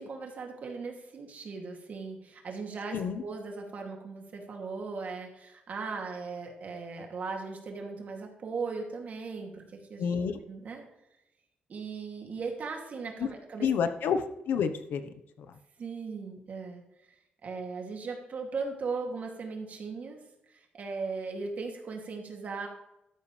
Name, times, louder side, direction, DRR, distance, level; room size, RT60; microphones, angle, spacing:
voice 1, 0.0-10.1 10.5-10.8 11.7-13.7 15.8-16.8 17.4-20.2 20.5-22.7, right 4 dB, 50° right, 1 dB, 2.7 m, -38 dB
voice 2, 2.9-3.2 10.0-10.5 13.2-13.3 13.6-15.0 15.4-15.5, left 6 dB, 85° left, 9 dB, 1.1 m, -29 dB
13.0 x 11.0 x 3.4 m, 0.87 s
cardioid pair, 130°, 3 cm